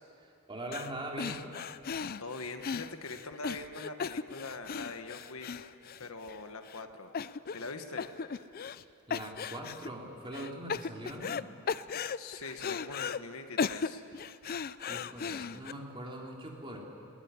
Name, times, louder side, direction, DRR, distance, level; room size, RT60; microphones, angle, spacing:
voice 1, 0.2-1.6 8.6-11.4 14.9-16.8, right 1 dB, 25° right, -1 dB, 3.1 m, -42 dB
sound 1, 0.7-0.9 1.2-6.4 6.7-6.8 7.1-7.7 8.0-8.8 9.1-9.9 10.3-11.4 11.7-13.2 13.6-15.7, left 6 dB, 40° left, 0.4 m, -36 dB
voice 2, 2.2-5.7 6.0-7.1 7.5-8.1 12.1-14.0, left 3 dB, 65° left, 6 dB, 1.5 m, -43 dB
20.5 x 18.5 x 9.8 m, 2.6 s
head